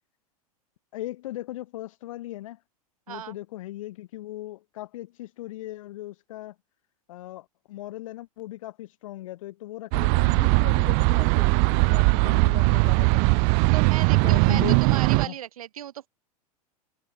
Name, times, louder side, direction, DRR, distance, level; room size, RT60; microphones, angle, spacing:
voice 1, 0.9-2.6 3.1-6.5 7.1-13.5 14.2-14.8 15.1-15.3, left 15 dB, 55° left, 4.3 m, -38 dB
sound 1, 9.9-15.3, right 40 dB or more, 35° right, 0.4 m, -20 dB
voice 2, 13.7-16.1, right 11 dB, 65° right, 4.1 m, -36 dB
figure-of-eight pair, 90°, 20 cm